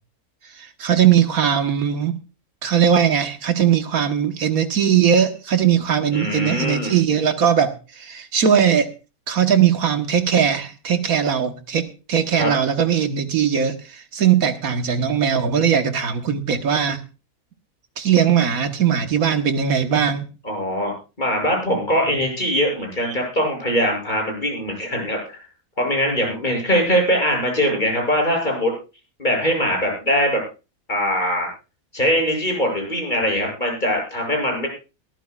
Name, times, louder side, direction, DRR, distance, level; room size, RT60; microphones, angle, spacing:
voice 1, 0.6-2.2 2.6-8.9 9.3-17.0 18.0-20.3, right 8 dB, 70° right, 1.7 m, -19 dB
voice 2, 6.1-6.9 12.3-12.5 20.4-25.4 25.8-28.7 29.2-30.4 30.9-31.5 31.9-34.7, equal, 30° left, 7.6 m, -22 dB
22.0 x 14.0 x 2.4 m
omnidirectional pair, 1.6 m